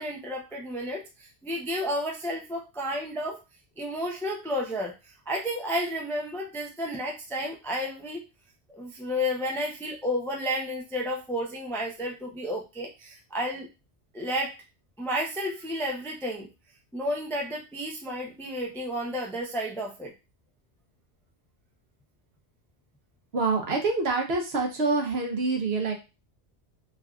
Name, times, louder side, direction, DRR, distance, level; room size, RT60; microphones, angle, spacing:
voice 1, 0.0-3.4 3.8-4.9 5.3-8.2 8.8-13.7 14.1-14.6 15.0-16.5 16.9-20.1, equal, 5° left, 0 dB, 0.3 m, -31 dB
voice 2, 23.3-25.9, right 3 dB, 75° right, 2 dB, 1.0 m, -26 dB
3.2 x 2.5 x 2.3 m, 0.27 s
omnidirectional pair, 1.1 m